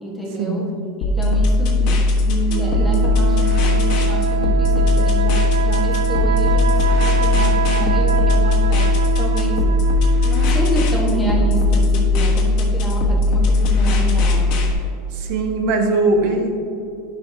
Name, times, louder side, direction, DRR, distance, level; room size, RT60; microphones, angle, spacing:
voice 1, 0.0-0.7 1.0-9.7 10.2-14.5, right 1 dB, 5° left, -4 dB, 1.4 m, -28 dB
sound 1, 1.0-14.7, left 2 dB, 50° left, 1.3 m, -17 dB
sound 2, 2.5-12.2, right 8 dB, 85° right, 0.4 m, -26 dB
voice 2, 15.1-16.5, right 2 dB, 55° right, 3 dB, 1.1 m, -20 dB
10.5 x 5.8 x 2.8 m, 2.8 s
supercardioid pair, 145°, 0 cm